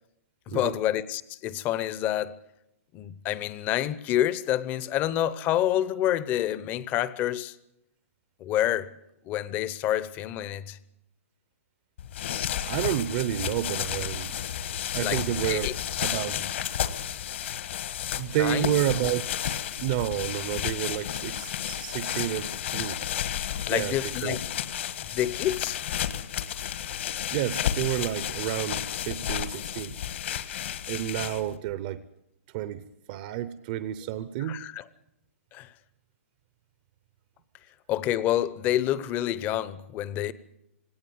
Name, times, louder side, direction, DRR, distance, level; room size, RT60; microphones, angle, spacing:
voice 1, 0.5-2.3 2.9-7.6 8.4-8.9 9.2-10.8 15.0-15.7 16.1-16.3 18.4-18.8 23.7-24.5 25.0-25.8 34.4-34.8 35.5-35.7 37.9-40.3, left 12 dB, 20° left, 0.8 m, -28 dB
sound 1, 12.0-31.6, left 10 dB, 55° left, 1.5 m, -32 dB
voice 2, 12.7-14.4 14.9-15.7 16.0-16.5 18.2-23.0 23.7-23.9 24.2-24.4 27.3-30.0 30.9-32.0 32.5-34.7, right 12 dB, 35° right, 0.8 m, -30 dB
19.0 x 17.5 x 9.4 m
hypercardioid pair, 160°, 8 cm